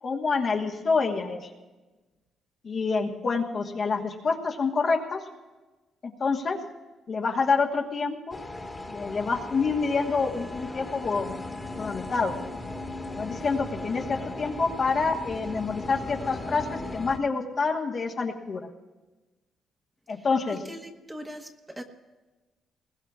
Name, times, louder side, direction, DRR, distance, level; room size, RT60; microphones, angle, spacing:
voice 1, 0.0-1.5 2.6-5.2 6.0-6.6 7.1-8.4 8.9-11.4 11.8-12.3 13.1-18.7 20.1-20.6, left 4 dB, 45° left, 1 dB, 1.4 m, -27 dB
sound 1, 8.3-17.2, left 2 dB, 20° left, 1.6 m, -37 dB
voice 2, 20.6-21.8, equal, 10° right, 4 dB, 1.3 m, -41 dB
20.5 x 19.5 x 2.5 m, 1.2 s
cardioid pair, 90°, 0 cm